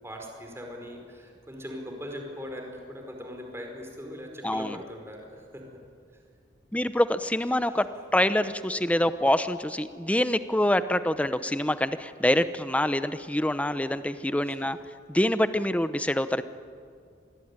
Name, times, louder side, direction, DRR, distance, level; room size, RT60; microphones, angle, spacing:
voice 1, 0.0-5.6 7.7-8.1 13.4-13.5 14.4-14.5, equal, 15° right, 2 dB, 4.8 m, -40 dB
voice 2, 4.4-4.8 6.7-14.8 15.1-16.4, left 1 dB, 10° left, 12 dB, 0.8 m, -25 dB
26.0 x 20.5 x 9.7 m, 2.3 s
head